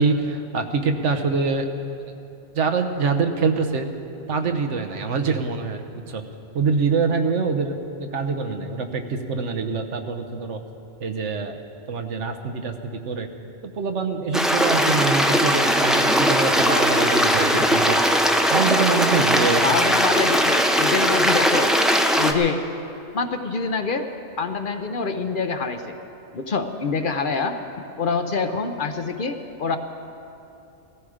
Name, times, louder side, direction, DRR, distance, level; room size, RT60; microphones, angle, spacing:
voice 1, 0.0-1.7 2.5-3.9 4.3-6.2 6.5-10.6 11.0-11.6 11.9-13.3 13.8-19.6, right 4 dB, 80° right, 5 dB, 1.3 m, -24 dB
Stream, 14.3-22.3, equal, ahead, 0.5 m, -19 dB
voice 2, 19.6-21.7 22.1-22.6 23.1-24.1 24.4-25.9 26.3-27.6 28.0-29.8, left 4 dB, 50° left, 7 dB, 0.8 m, -25 dB
17.0 x 14.5 x 5.0 m, 2.9 s
omnidirectional pair, 1.2 m